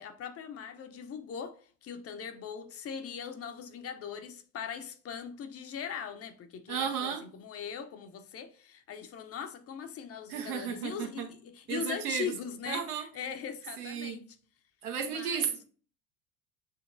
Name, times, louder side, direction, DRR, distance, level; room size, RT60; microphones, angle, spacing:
voice 1, 0.0-14.2 15.1-15.5, left 7 dB, 35° left, 0.6 m, -40 dB
voice 2, 6.7-7.2 10.3-11.3 11.7-12.3 12.7-13.1 13.8-14.2 14.8-15.6, right 7 dB, 75° right, 1.1 m, -34 dB
7.2 x 2.9 x 2.6 m
hypercardioid pair, 70°, 45 cm